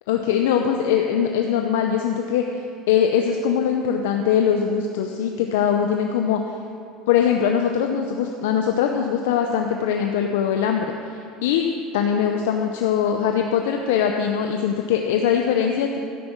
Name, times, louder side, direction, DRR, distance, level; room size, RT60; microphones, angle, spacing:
voice 1, 0.1-2.6 2.9-6.4 7.1-10.9 11.4-11.7 11.9-16.0, left 8 dB, 85° left, 3 dB, 0.7 m, -21 dB
12.5 x 9.7 x 4.6 m, 2.5 s
supercardioid pair, 95°, 0 cm